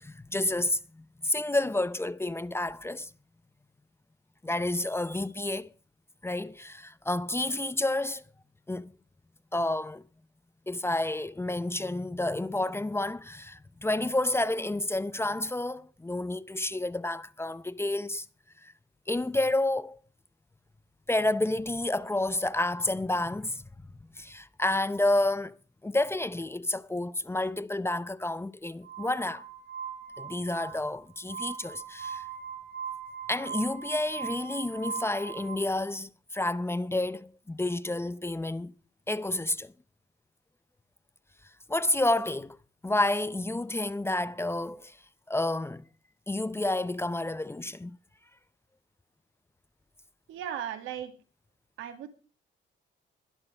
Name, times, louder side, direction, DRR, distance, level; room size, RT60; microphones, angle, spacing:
voice 1, 0.0-3.1 4.4-5.7 6.2-8.2 8.7-8.9 9.5-10.0 10.7-18.3 18.6-18.7 19.1-20.0 21.1-23.6 24.2-25.6 25.8-29.5 30.2-32.2 33.3-38.7 39.1-39.7 41.7-42.6 42.8-45.0 45.3-45.8 46.3-48.0, left 2 dB, 10° left, 0.6 m, -30 dB
Glass, 28.8-35.6, right 7 dB, 65° right, 5.4 m, -40 dB
voice 2, 50.3-51.1 51.8-52.1, right 10 dB, 90° right, 2.3 m, -36 dB
20.5 x 12.0 x 3.4 m
cardioid pair, 90°, 20 cm